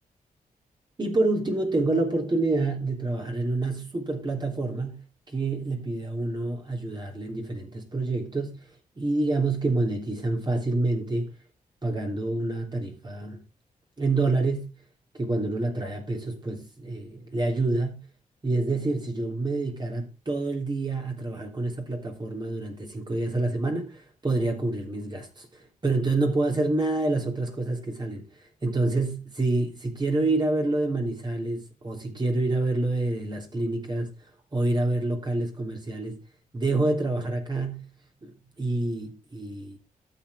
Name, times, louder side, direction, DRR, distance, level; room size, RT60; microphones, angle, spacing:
voice 1, 1.0-8.7 9.0-11.3 11.8-13.4 14.0-14.7 15.2-18.0 18.4-34.1 34.5-36.2 36.5-37.9 38.2-38.3 38.6-39.8, right 2 dB, 30° right, 3.2 m, -27 dB
13.0 x 7.6 x 3.6 m
cardioid pair, 85°, 15 cm